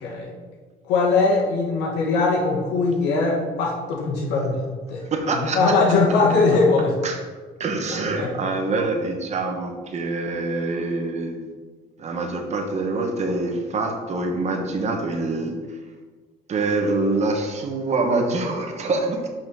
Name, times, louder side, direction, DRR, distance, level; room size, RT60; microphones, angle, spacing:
voice 1, 0.0-0.3 0.8-4.6 4.9-5.0 5.5-7.0 8.2-8.5, left 3 dB, 90° left, -2 dB, 1.2 m, -20 dB
voice 2, 5.0-5.7 7.0-7.2 7.6-11.5 12.0-15.5 16.5-19.3, right 3 dB, 40° right, 3 dB, 1.2 m, -25 dB
5.7 x 4.2 x 5.5 m, 1.4 s
cardioid pair, 110°, 17 cm